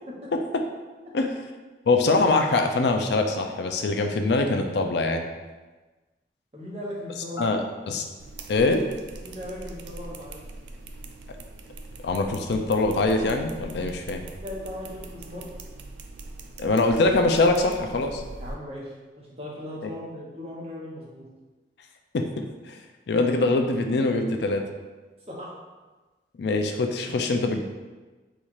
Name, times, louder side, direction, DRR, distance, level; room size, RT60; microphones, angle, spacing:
voice 1, 0.3-0.6 1.1-1.3 1.9-5.2 7.4-8.0 8.5-8.8 12.0-14.2 16.6-18.2 22.1-22.8 23.1-24.6 26.4-27.6, left 3 dB, 65° left, 5 dB, 0.4 m, -23 dB
voice 2, 6.5-7.6 9.2-10.4 14.4-15.5 18.4-21.3 25.3-25.5, left 1 dB, 35° right, -5 dB, 1.0 m, -38 dB
sound 1, 8.2-18.5, right 2 dB, 75° right, 0.4 m, -41 dB
4.2 x 2.4 x 4.6 m, 1.2 s
head